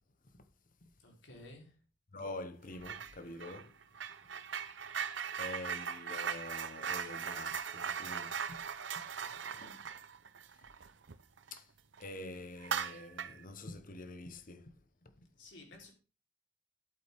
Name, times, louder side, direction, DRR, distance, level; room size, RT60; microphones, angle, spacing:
voice 1, 1.0-1.7 9.2-9.7 15.4-15.9, left 2 dB, 70° left, 3.8 m, -55 dB
voice 2, 2.1-3.8 4.2-4.3 5.4-8.6 9.6-9.9 11.5-11.7 12.0-14.7 15.0-15.3, left 2 dB, 45° left, 1.0 m, -46 dB
sound 1, 2.8-3.1 3.4-11.6 11.9-12.1 12.6-13.4, right 7 dB, 70° right, 0.8 m, -39 dB
11.5 x 8.5 x 3.6 m
head